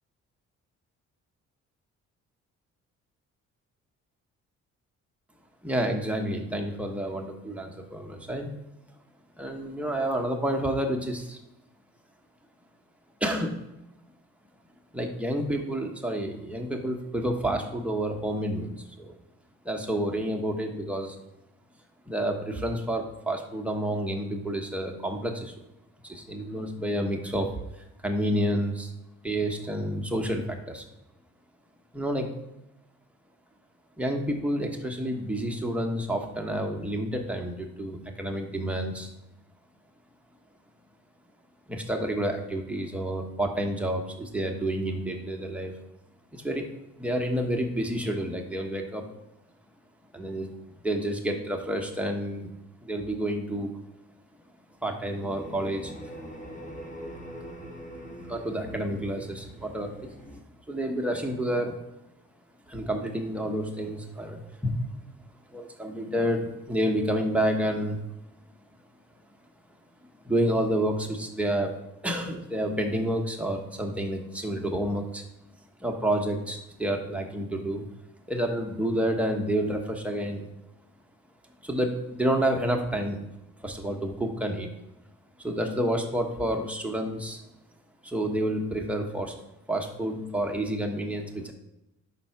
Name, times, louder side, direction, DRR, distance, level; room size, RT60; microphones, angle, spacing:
voice 1, 5.6-8.5 9.4-11.4 13.2-13.6 14.9-19.1 19.6-21.2 22.1-25.5 26.0-27.5 28.0-28.9 29.2-30.8 31.9-32.3 34.0-39.1 41.7-45.7 46.3-46.7 47.0-49.0 50.1-50.5 50.8-52.5 52.8-53.7 54.8-55.9 58.3-60.0 60.7-61.8 62.7-64.7 65.5-68.0 70.2-71.8 72.0-75.2 75.8-77.8 78.3-80.5 81.6-83.2 83.6-84.7 85.4-87.4 88.0-89.3 89.7-91.5, right 1 dB, 5° right, 2 dB, 1.0 m, -29 dB
sound 1, 55.2-60.4, equal, 25° left, 1.3 m, -42 dB
5.6 x 3.8 x 5.7 m, 0.91 s
cardioid pair, 90°, 30 cm